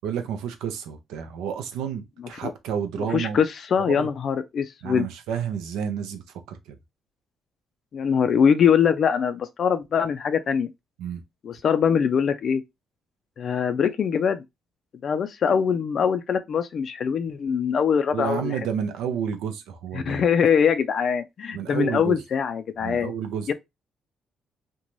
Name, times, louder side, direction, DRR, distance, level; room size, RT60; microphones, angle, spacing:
voice 1, 0.0-3.4 3.9-4.1 4.8-6.2 6.5-6.8 11.0-11.2 18.1-20.2 21.5-22.2 22.8-23.5, right 8 dB, 85° right, 0.5 m, -30 dB
voice 2, 3.1-5.1 7.9-10.7 11.4-12.6 13.4-14.4 15.0-18.6 19.9-23.1 23.5-23.6, left 7 dB, 55° left, 0.3 m, -23 dB
2.5 x 2.2 x 3.0 m
supercardioid pair, 70°, 0 cm